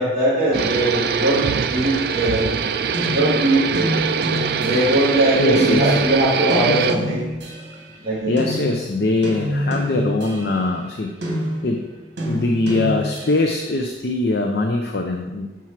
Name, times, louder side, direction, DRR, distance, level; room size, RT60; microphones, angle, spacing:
voice 1, 0.0-1.4 1.7-2.5 3.1-3.9 4.5-7.3 8.0-8.5, right 1 dB, 25° right, -10 dB, 1.8 m, -20 dB
sound 1, 0.5-7.0, right 6 dB, 60° right, 0.4 m, -23 dB
sound 2, 2.3-5.1 5.6-7.9 8.4-13.6, equal, 75° right, 1.7 m, -28 dB
voice 2, 5.4-6.0 8.3-11.1 11.6-12.0 12.3-15.5, left 2 dB, 60° left, 2 dB, 0.6 m, -22 dB
6.1 x 4.6 x 5.7 m, 1.1 s
head